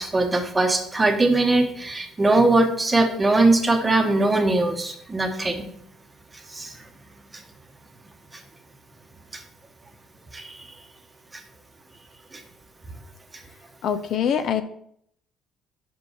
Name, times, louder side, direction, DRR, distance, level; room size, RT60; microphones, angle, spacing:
voice 1, 0.0-5.7 6.5-6.7 9.3-9.4 10.3-10.6, right 2 dB, 20° right, 5 dB, 1.0 m, -21 dB
voice 2, 13.8-14.6, left 8 dB, 60° left, 10 dB, 0.6 m, -23 dB
5.5 x 5.2 x 4.6 m, 0.69 s
cardioid pair, 100°, 0 cm